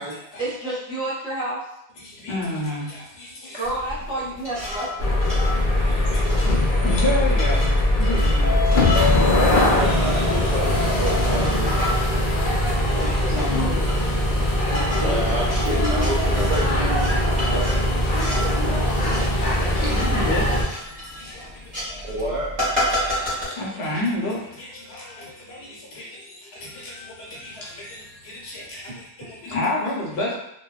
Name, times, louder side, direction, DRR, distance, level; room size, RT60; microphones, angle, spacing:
voice 1, 0.4-1.6 3.6-5.4, right 1 dB, 5° right, -8 dB, 0.6 m, -29 dB
voice 2, 2.0-3.6 5.8-6.2 6.7-8.5 8.9-9.9 12.1-15.1 18.3-22.2 22.8-30.3, left 1 dB, 70° left, -3 dB, 0.9 m, -32 dB
sound 1, 3.6-23.4, left 1 dB, 35° right, 1.0 m, -33 dB
sound 2, 5.0-20.6, left 1 dB, 55° left, 0.4 m, -21 dB
voice 3, 6.0-6.4 9.7-11.7 15.0-17.9 22.0-22.5, right 1 dB, 65° right, -5 dB, 0.3 m, -29 dB
2.7 x 2.2 x 2.3 m, 0.78 s
omnidirectional pair, 1.1 m